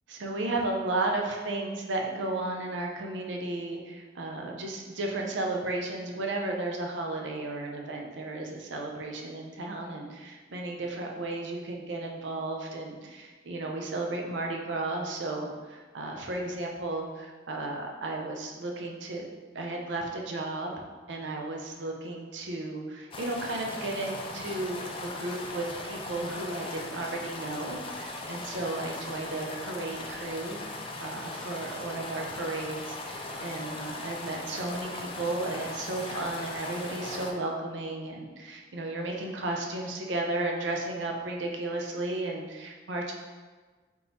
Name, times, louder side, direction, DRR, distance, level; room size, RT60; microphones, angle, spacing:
voice 1, 0.1-19.3 19.5-20.7 21.1-43.1, right 2 dB, 80° right, 1 dB, 0.6 m, -34 dB
sound 1, 23.1-37.3, left 2 dB, 30° left, 0.4 m, -39 dB
3.7 x 2.9 x 3.9 m, 1.4 s
head